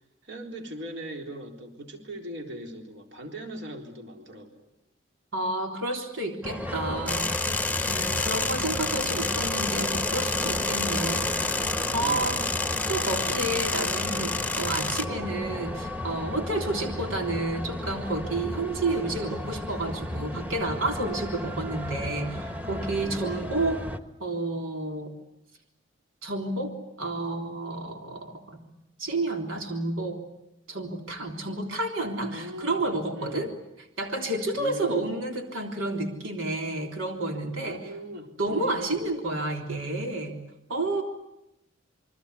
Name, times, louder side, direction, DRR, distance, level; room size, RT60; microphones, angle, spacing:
voice 1, 0.2-4.7 8.0-8.5 12.0-12.6 23.0-23.6 32.3-32.9 33.1-33.5 34.5-35.1 37.6-39.0, equal, 60° right, 3 dB, 3.8 m, -40 dB
voice 2, 5.3-7.3 7.9-11.3 11.9-12.4 12.9-23.8 24.2-25.1 26.2-28.6 29.0-30.2 30.7-33.5 34.0-37.8 38.4-40.3 40.7-41.0, right 2 dB, 85° right, 3 dB, 3.5 m, -30 dB
sound 1, 6.4-24.0, left 1 dB, 10° right, 1.5 m, -34 dB
sound 2, 7.1-15.0, left 3 dB, 10° left, 0.9 m, -29 dB
27.5 x 24.0 x 8.3 m, 0.89 s
head